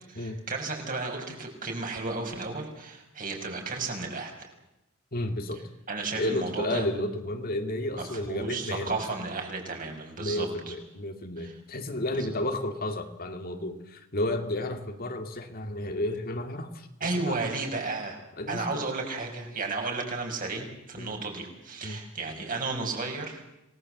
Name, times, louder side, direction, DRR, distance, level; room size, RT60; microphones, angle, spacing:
voice 1, 0.1-4.5 5.9-6.8 8.0-10.7 11.4-11.5 12.1-12.4 17.0-18.2 18.5-23.4, right 3 dB, 45° right, 2 dB, 5.6 m, -33 dB
voice 2, 5.1-5.7 6.2-9.0 10.2-17.5 18.4-18.9 21.0-21.1 21.8-22.0, left 1 dB, 45° left, 6 dB, 2.3 m, -32 dB
27.0 x 19.0 x 7.8 m, 0.91 s
head